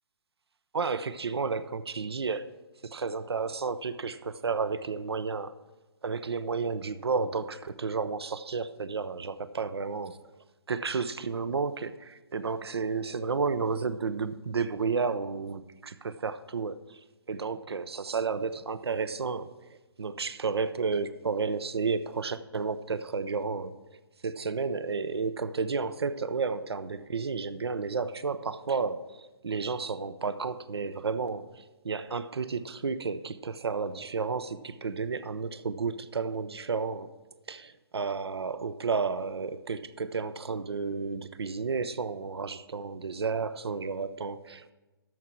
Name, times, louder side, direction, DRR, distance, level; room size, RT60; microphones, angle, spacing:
voice 1, 0.7-5.5 6.0-10.2 10.7-17.0 17.3-24.0 24.2-37.1 37.5-44.7, right 5 dB, 80° right, 13 dB, 0.6 m, -32 dB
13.0 x 4.6 x 7.3 m, 1.1 s
figure-of-eight pair, 135°, 13 cm